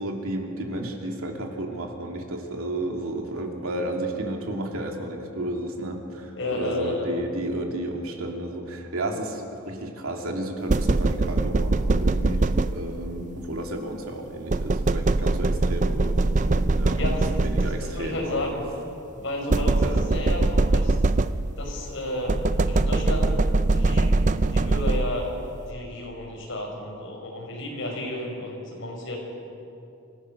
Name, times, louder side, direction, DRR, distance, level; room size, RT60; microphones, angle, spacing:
voice 1, 0.0-12.4 12.7-16.2 16.5-17.1 17.3-18.5 19.8-20.1, right 1 dB, 80° right, 2 dB, 2.7 m, -32 dB
voice 2, 6.3-7.1 16.9-17.2 17.6-18.6 19.2-21.0 21.5-22.4 22.7-23.3 23.7-25.3 25.7-29.2, left 1 dB, 60° left, 0 dB, 5.3 m, -32 dB
sound 1, 10.7-13.2 14.5-18.1 19.5-21.7 22.3-25.4, right 2 dB, 35° right, 0.5 m, -22 dB
25.5 x 16.0 x 6.6 m, 2.7 s
head